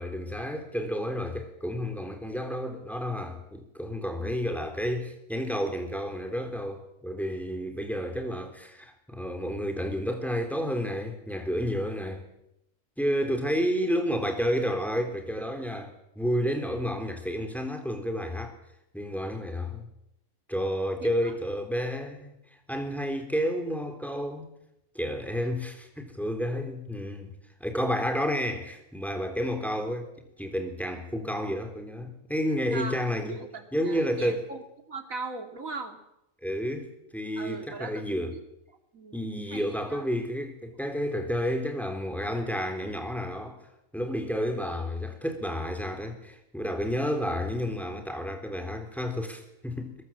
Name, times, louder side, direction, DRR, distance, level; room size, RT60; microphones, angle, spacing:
voice 1, 0.0-12.2 13.0-18.6 18.9-19.9 20.5-22.3 22.7-24.5 24.9-27.3 27.6-33.3 33.7-34.4 36.4-38.3 39.1-43.6 43.9-50.0, equal, ahead, 5 dB, 3.8 m, -31 dB
voice 2, 21.0-21.4 32.7-34.6 34.9-36.0 37.4-38.4 38.9-40.1, right 3 dB, 80° right, 6 dB, 3.0 m, -40 dB
22.0 x 22.0 x 7.6 m, 0.81 s
omnidirectional pair, 1.4 m